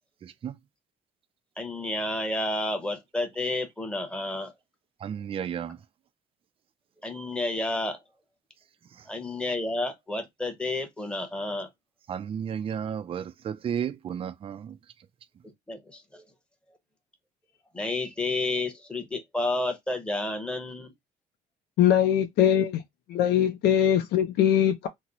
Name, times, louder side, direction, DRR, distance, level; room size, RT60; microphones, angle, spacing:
voice 1, 0.2-0.5 5.0-5.8 12.1-14.8, right 8 dB, 35° right, 0.4 m, -33 dB
voice 2, 1.6-4.5 7.0-8.0 9.1-11.7 15.7-16.2 17.7-20.9, left 2 dB, 5° left, 0.9 m, -30 dB
voice 3, 21.8-22.8 23.1-24.9, left 10 dB, 70° left, 0.5 m, -22 dB
2.9 x 2.1 x 3.8 m
cardioid pair, 110°, 17 cm